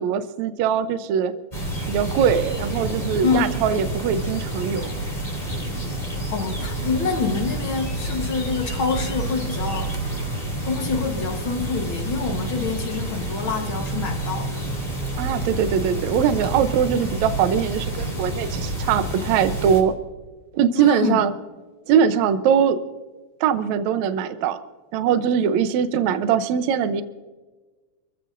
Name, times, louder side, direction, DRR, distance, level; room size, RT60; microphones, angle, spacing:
voice 1, 0.0-1.3 1.9-4.9 15.2-19.9 20.5-21.3 21.9-22.8 23.4-24.6 24.9-27.0, right 8 dB, 75° right, 10 dB, 2.0 m, -21 dB
sound 1, 1.5-19.8, right 1 dB, 15° left, 3.4 m, -29 dB
voice 2, 3.2-3.5 6.3-9.9 10.6-14.5 20.8-21.2, left 5 dB, 55° left, 4 dB, 1.7 m, -26 dB
28.0 x 15.0 x 2.6 m, 1.3 s
omnidirectional pair, 3.5 m